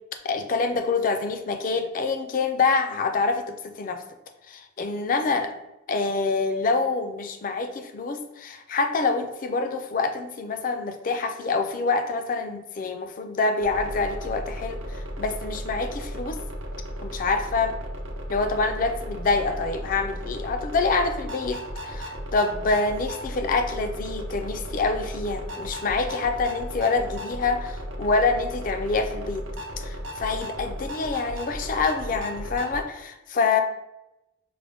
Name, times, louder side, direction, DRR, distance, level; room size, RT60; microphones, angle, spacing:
voice 1, 0.2-4.0 4.5-5.5 5.9-16.4 17.0-17.7 18.3-29.5 29.8-33.6, left 4 dB, 40° left, 7 dB, 0.4 m, -26 dB
sound 1, 13.6-32.8, equal, 65° right, 0.6 m, -35 dB
5.0 x 2.1 x 3.4 m, 0.94 s
head